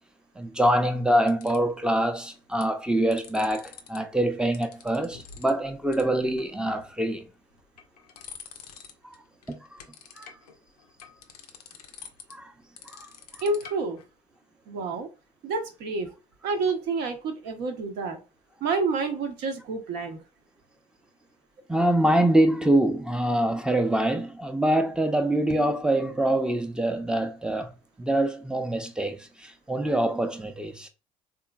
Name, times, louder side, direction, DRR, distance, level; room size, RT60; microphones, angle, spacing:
voice 1, 0.4-7.3 9.0-9.2 9.5-9.6 10.2-10.3 12.3-12.5 12.8-13.1 21.7-30.9, right 1 dB, 5° right, 0.5 m, -25 dB
sound 1, 0.6-1.8 2.4-2.7 3.0-4.0 4.2-5.6 5.9-6.0 6.4-7.0 7.5-9.2 9.4-14.1, left 7 dB, 90° left, 0.4 m, -47 dB
voice 2, 13.4-14.0 14.7-15.1 15.4-16.1 16.4-18.2 18.6-20.2, right 3 dB, 60° right, 0.7 m, -28 dB
3.6 x 2.6 x 2.2 m
hypercardioid pair, 55°, 19 cm